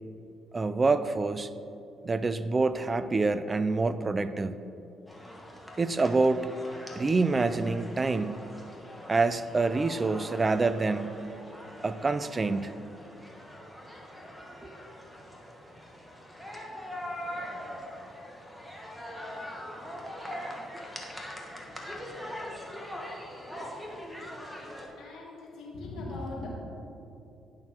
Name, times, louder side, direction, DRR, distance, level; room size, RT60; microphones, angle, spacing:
voice 1, 0.5-1.5 2.0-4.5 5.8-6.5 7.0-8.5 9.1-11.2 11.8-12.8, right 3 dB, 30° right, 12 dB, 0.3 m, -26 dB
sound 1, 5.1-24.9, equal, ahead, 1.2 m, -42 dB
voice 2, 25.0-26.5, left 2 dB, 85° left, -2 dB, 1.6 m, -39 dB
10.5 x 6.0 x 2.9 m, 2.8 s
cardioid pair, 90°, 0 cm